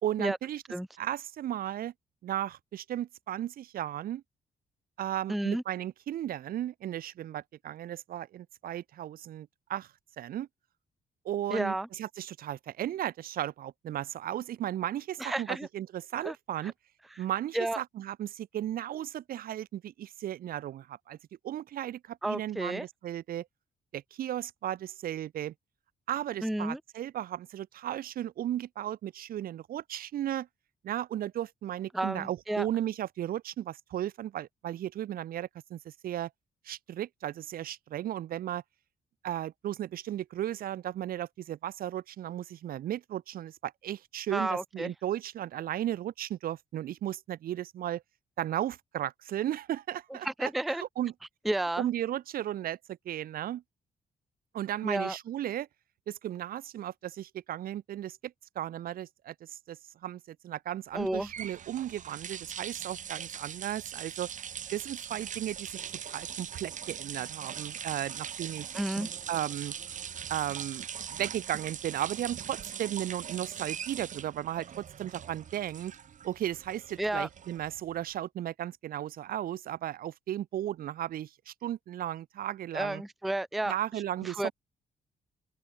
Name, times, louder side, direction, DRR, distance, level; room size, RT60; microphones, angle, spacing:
voice 1, 0.0-0.6 1.0-1.9 2.2-4.2 5.0-9.9 10.2-10.5 11.2-16.7 17.2-21.2 21.4-23.5 23.9-25.5 26.1-30.5 30.8-36.3 36.6-38.6 39.2-48.0 48.4-51.1 51.8-52.8 53.0-53.6 54.5-55.7 56.1-64.3 64.7-68.8 69.3-69.7 70.3-75.9 76.2-83.0 83.6-84.5, right 12 dB, 80° right, 3.3 m, -35 dB
voice 2, 5.3-5.6 11.5-11.9 15.2-15.7 16.2-16.3 16.6-16.7 17.5-17.8 22.2-22.8 26.4-26.8 31.9-32.7 44.3-44.9 50.2-50.8 51.5-51.9 54.8-55.2 60.9-61.3 68.7-69.1 77.0-77.3 82.7-83.7 84.2-84.5, right 1 dB, ahead, 0.4 m, -31 dB
sound 1, 61.0-78.0, right 8 dB, 60° right, 4.6 m, -41 dB
open air
cardioid pair, 100°, 15 cm